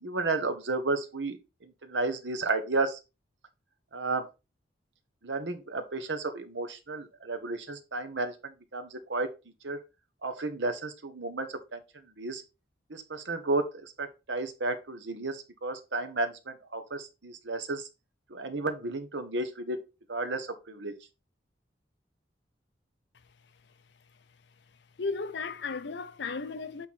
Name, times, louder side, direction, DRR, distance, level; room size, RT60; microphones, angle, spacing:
voice 1, 0.0-3.0 3.9-4.3 5.2-9.3 9.6-9.8 10.2-11.8 12.2-12.4 12.9-17.9 18.3-19.8 20.1-20.9, right 3 dB, 85° right, 1.2 m, -33 dB
voice 2, 25.0-26.9, left 4 dB, 75° left, 0.7 m, -34 dB
8.1 x 3.9 x 4.2 m
head